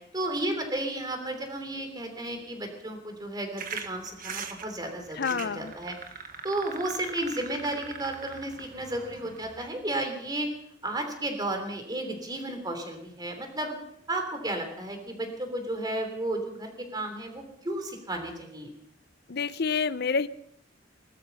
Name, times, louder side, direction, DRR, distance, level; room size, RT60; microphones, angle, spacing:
voice 1, 0.1-5.9 6.4-10.5 10.8-13.7 14.1-18.7, right 1 dB, 20° right, 5 dB, 3.2 m, -33 dB
sound 1, 3.6-9.7, right 6 dB, 50° right, 1.5 m, -41 dB
voice 2, 5.2-5.7 19.3-20.3, left 5 dB, 60° left, 16 dB, 0.7 m, -28 dB
20.0 x 13.0 x 5.6 m, 0.72 s
head